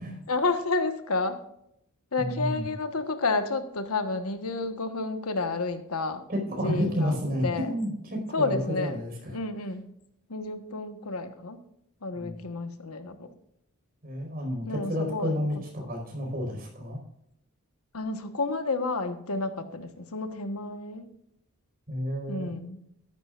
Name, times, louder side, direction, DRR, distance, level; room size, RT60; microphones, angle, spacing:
voice 1, 0.3-1.4 2.1-6.2 6.6-7.7 8.3-9.0 9.3-9.8 10.3-11.6 12.0-13.3 14.7-15.6 17.9-21.1 22.3-22.8, left 3 dB, 80° left, 9 dB, 1.3 m, -30 dB
voice 2, 2.2-2.6 6.3-9.4 12.2-12.3 14.0-17.0 21.9-22.5, equal, 45° right, 2 dB, 4.9 m, -30 dB
13.5 x 12.0 x 2.5 m, 0.75 s
head